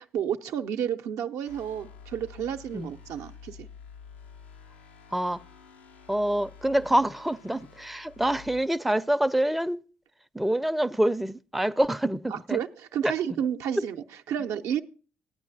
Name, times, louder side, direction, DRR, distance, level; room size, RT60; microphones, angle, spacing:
voice 1, 0.0-3.7 12.3-14.8, right 9 dB, 70° right, 0.5 m, -31 dB
sound 1, 1.5-8.6, left 6 dB, 90° left, 0.5 m, -49 dB
voice 2, 5.1-5.4 6.1-9.8 10.3-12.6 13.0-13.1 13.8-13.9, right 1 dB, ahead, 0.4 m, -26 dB
16.0 x 9.0 x 2.6 m
hypercardioid pair, 45°, 6 cm